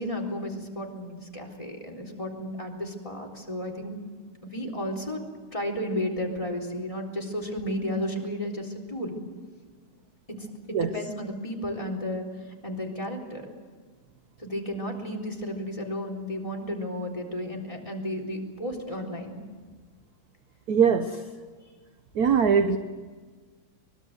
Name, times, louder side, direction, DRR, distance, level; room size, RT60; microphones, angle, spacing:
voice 1, 0.0-4.0 4.4-5.2 5.5-9.2 10.4-13.5 14.4-19.4, equal, 15° left, 3 dB, 3.8 m, -33 dB
voice 2, 20.7-21.1 22.2-22.8, right 6 dB, 55° right, 9 dB, 1.2 m, -21 dB
24.0 x 21.5 x 8.0 m, 1.5 s
omnidirectional pair, 2.4 m